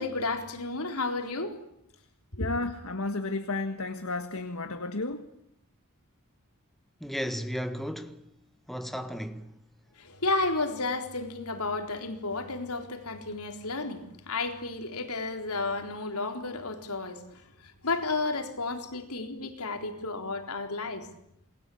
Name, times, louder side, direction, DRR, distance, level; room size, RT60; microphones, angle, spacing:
voice 1, 0.0-1.6 2.3-2.5 10.0-17.2 17.6-21.1, left 3 dB, 90° left, 4.0 m, -32 dB
voice 2, 2.4-5.3, left 2 dB, 75° left, 1.7 m, -32 dB
voice 3, 7.0-8.3 8.7-9.5, equal, ahead, 1.6 m, -34 dB
28.5 x 21.5 x 8.7 m
head